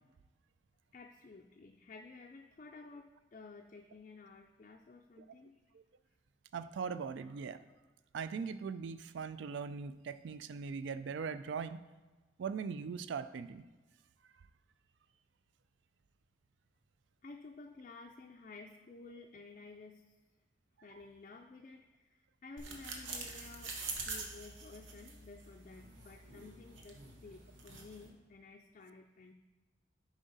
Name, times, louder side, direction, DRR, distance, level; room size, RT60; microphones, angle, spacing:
voice 1, 0.9-5.6 17.2-20.1 20.8-23.8 24.1-29.3, left 3 dB, 40° left, 2 dB, 0.4 m, -53 dB
voice 2, 6.5-7.6 8.1-11.8 12.4-13.6, right 5 dB, 70° right, 13 dB, 0.3 m, -40 dB
sound 1, 22.6-28.1, right 3 dB, 90° right, 1.1 m, -45 dB
7.4 x 5.0 x 4.0 m, 1.2 s
head